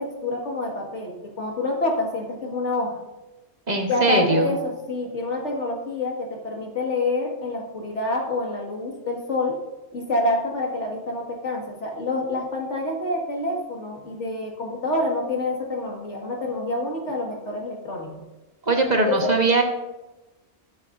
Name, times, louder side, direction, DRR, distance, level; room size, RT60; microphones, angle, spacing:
voice 1, 0.0-3.0 3.9-9.6 9.9-18.2 19.1-19.2, left 2 dB, 85° left, 0 dB, 2.3 m, -27 dB
voice 2, 3.7-4.6 18.7-19.6, right 2 dB, 40° right, 2 dB, 1.4 m, -21 dB
20.0 x 8.0 x 2.6 m, 1.1 s
omnidirectional pair, 1.2 m